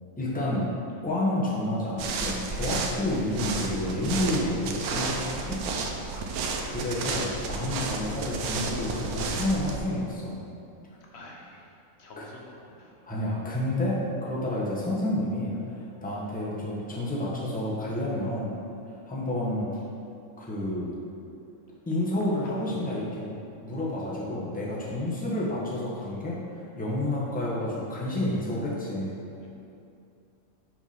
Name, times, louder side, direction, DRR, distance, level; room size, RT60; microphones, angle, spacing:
voice 1, 0.2-0.7 1.0-5.6 6.6-10.4 12.2-12.3 13.0-15.6 16.0-18.6 19.1-19.7 20.4-20.9 21.9-23.4 23.6-29.1, left 1 dB, 5° left, -6 dB, 0.9 m, -29 dB
sound 1, 2.0-9.8, right 4 dB, 85° right, 1.1 m, -32 dB
voice 2, 5.8-6.8 11.1-11.6 12.0-13.2 22.4-22.7 24.8-25.5 29.4-29.5, left 2 dB, 50° left, -2 dB, 1.2 m, -48 dB
5.6 x 4.4 x 5.5 m, 2.7 s
omnidirectional pair, 1.5 m